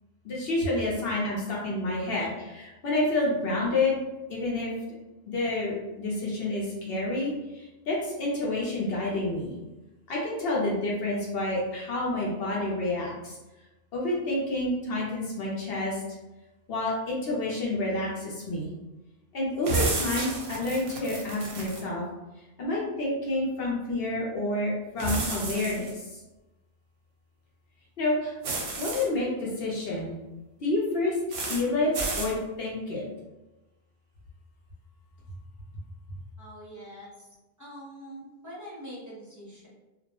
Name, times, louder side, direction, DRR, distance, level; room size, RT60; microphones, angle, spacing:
voice 1, 0.2-4.0 4.3-4.7 5.3-9.6 10.1-13.4 13.9-16.0 16.7-18.7 19.3-22.0 22.6-26.2 28.0-28.4 28.8-30.1 30.6-31.2 31.5-33.1, left 2 dB, 70° left, -4 dB, 0.8 m, -29 dB
sound 1, 19.6-21.8 25.0-25.9 28.4-29.0 31.3-31.6 31.9-32.3, right 3 dB, 65° right, 0.7 m, -31 dB
voice 2, 36.4-37.3 37.6-39.7, equal, 20° right, -7 dB, 0.6 m, -44 dB
2.2 x 2.0 x 2.8 m, 1.0 s
omnidirectional pair, 1.1 m